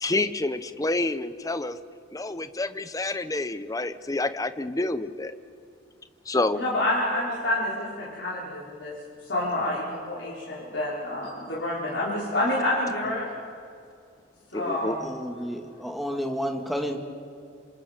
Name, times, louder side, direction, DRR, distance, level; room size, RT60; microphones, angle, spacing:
voice 1, 0.0-1.8 2.1-5.3 6.3-6.6 14.5-15.0, left 2 dB, 20° left, 12 dB, 0.7 m, -28 dB
voice 2, 6.5-9.0 9.3-13.3 14.5-15.0, left 1 dB, 65° left, -7 dB, 4.4 m, -28 dB
voice 3, 15.0-17.0, equal, ahead, 2 dB, 1.9 m, -31 dB
27.0 x 27.0 x 5.0 m, 2.3 s
head